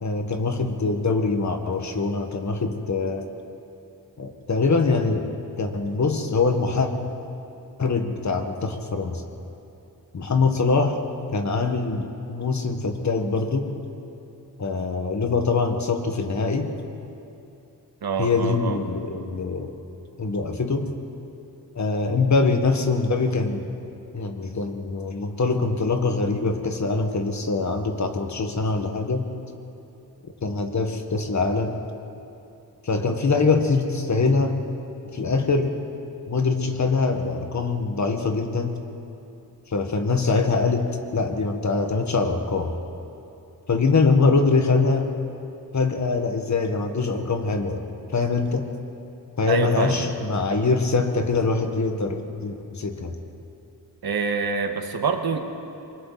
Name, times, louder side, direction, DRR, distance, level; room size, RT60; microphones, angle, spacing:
voice 1, 0.0-3.3 4.2-5.3 5.6-6.9 7.8-9.2 10.1-11.0 11.3-13.7 14.6-16.7 18.2-19.8 20.2-20.9 21.7-23.7 24.1-29.3 30.4-31.8 32.8-34.6 35.1-35.7 36.3-38.8 39.7-42.7 43.7-45.1 45.7-47.8 48.1-48.7 49.4-53.2, left 4 dB, 50° left, 5 dB, 1.6 m, -23 dB
voice 2, 18.0-18.8 49.5-50.1 54.0-55.4, right 5 dB, 80° right, 5 dB, 1.6 m, -26 dB
27.5 x 23.0 x 4.1 m, 2.8 s
wide cardioid pair, 155°, 36 cm